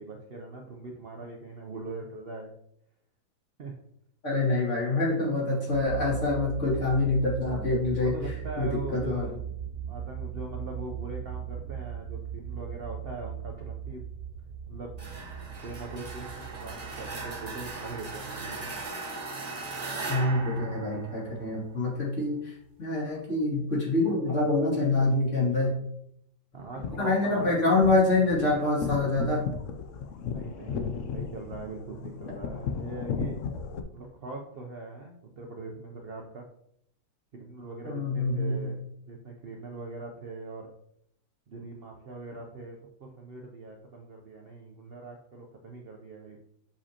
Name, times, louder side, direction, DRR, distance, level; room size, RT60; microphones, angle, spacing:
voice 1, 0.0-2.5 3.6-3.8 4.6-4.7 8.0-9.5 9.9-14.0 14.7-14.9 15.6-18.7 26.5-27.6 30.3-33.4 33.9-36.5 37.3-38.8 39.1-40.7 41.5-46.5, right 3 dB, 75° right, 1 dB, 0.5 m, -41 dB
voice 2, 4.2-8.1 8.6-9.3 20.1-25.7 27.0-29.4 37.8-38.7, left 2 dB, 40° left, -5 dB, 2.5 m, -26 dB
sound 1, 5.7-18.9, right 9 dB, 55° right, 1.4 m, -39 dB
sound 2, 15.0-21.7, right 3 dB, 30° right, 0.8 m, -38 dB
sound 3, 26.6-33.8, left 6 dB, 85° left, 0.6 m, -35 dB
7.1 x 5.0 x 2.8 m, 0.72 s
omnidirectional pair, 2.0 m